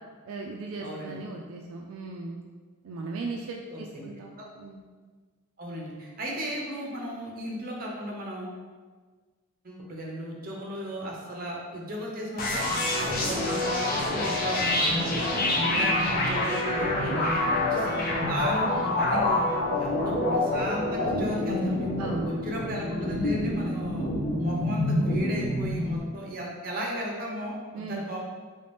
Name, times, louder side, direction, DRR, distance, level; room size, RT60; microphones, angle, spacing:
voice 1, 0.2-2.4 2.8-4.8 15.4-15.9 22.0-22.3 27.7-28.0, right 3 dB, 70° right, 0 dB, 0.3 m, -37 dB
voice 2, 0.8-1.2 3.7-4.1 4.4-4.5 5.6-8.5 9.6-12.7 13.0-15.3 15.7-19.5 19.8-21.9 22.2-24.1 24.4-28.2, equal, 40° right, -2 dB, 0.7 m, -35 dB
sound 1, 12.4-26.0, left 1 dB, 40° left, 0.5 m, -27 dB
3.3 x 2.8 x 3.3 m, 1.5 s
head